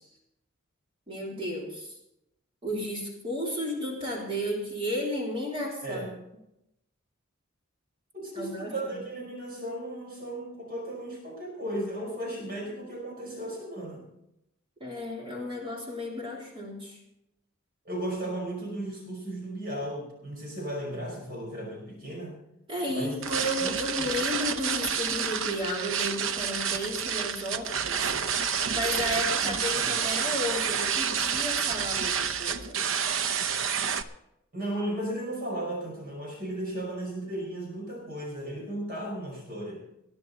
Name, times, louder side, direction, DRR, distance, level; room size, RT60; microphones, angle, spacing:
voice 1, 1.1-2.0 2.6-6.2 8.3-8.9 14.8-17.0 22.7-32.8, equal, 25° right, -2 dB, 3.4 m, -33 dB
voice 2, 8.1-14.1 17.9-22.4 22.9-24.1 29.4-29.9 34.5-39.8, right 1 dB, 45° right, -1 dB, 5.3 m, -35 dB
sound 1, 23.2-34.0, right 7 dB, 70° right, 0.8 m, -29 dB
19.5 x 11.5 x 4.1 m, 0.83 s
head